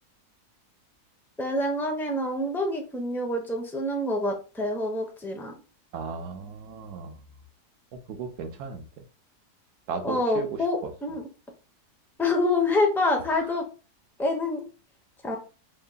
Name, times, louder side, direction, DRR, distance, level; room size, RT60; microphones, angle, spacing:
voice 1, 1.4-5.5 10.0-11.2 12.2-13.6 14.2-14.6 15.2-15.4, left 2 dB, 5° left, 0.4 m, -26 dB
voice 2, 5.9-7.2 7.9-9.0 9.9-10.9 13.3-13.5, right 5 dB, 80° right, 1.3 m, -36 dB
4.4 x 3.8 x 2.2 m
omnidirectional pair, 1.7 m